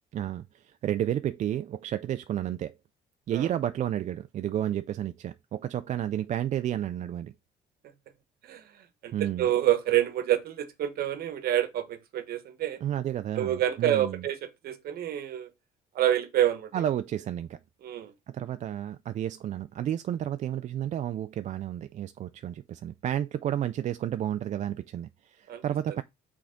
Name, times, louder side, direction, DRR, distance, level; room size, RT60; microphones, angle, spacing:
voice 1, 0.1-2.7 3.3-7.3 9.1-9.5 12.8-14.3 16.7-17.6 18.3-26.0, right 11 dB, 45° right, 0.4 m, -31 dB
voice 2, 9.4-12.8 13.4-15.5 15.9-16.7 17.8-18.1 25.5-25.6, right 12 dB, 65° right, 1.1 m, -27 dB
6.1 x 3.5 x 5.1 m
cardioid pair, 110°, 17 cm